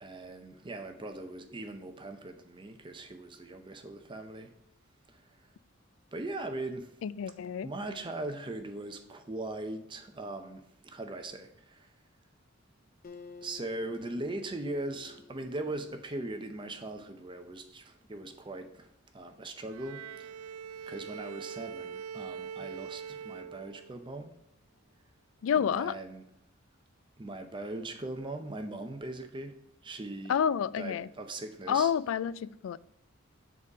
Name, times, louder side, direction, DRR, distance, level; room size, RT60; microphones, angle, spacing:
voice 1, 0.0-4.5 5.1-5.5 6.1-7.0 7.6-11.9 13.4-20.4 20.9-24.3 25.5-26.2 27.2-30.4 30.8-31.9, right 2 dB, 25° right, 6 dB, 0.6 m, -40 dB
voice 2, 7.0-7.7 25.4-26.0 30.3-31.1 31.7-32.8, left 8 dB, 70° left, 18 dB, 0.3 m, -29 dB
Acoustic guitar, 13.0-16.5, left 5 dB, 40° left, 0.6 m, -52 dB
Bowed string instrument, 19.7-24.1, right 7 dB, 85° right, 0.4 m, -43 dB
7.5 x 4.1 x 4.8 m, 0.82 s
head